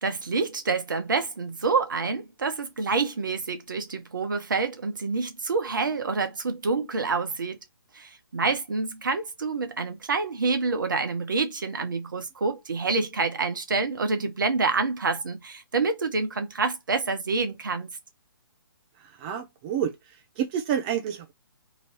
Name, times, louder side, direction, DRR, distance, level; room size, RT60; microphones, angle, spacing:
voice 1, 0.0-7.6 7.9-17.9, right 4 dB, 55° right, 1.0 m, -27 dB
voice 2, 19.0-19.9 20.4-21.3, right 9 dB, 20° right, 0.6 m, -29 dB
3.0 x 2.7 x 4.4 m
figure-of-eight pair, 130°, 12 cm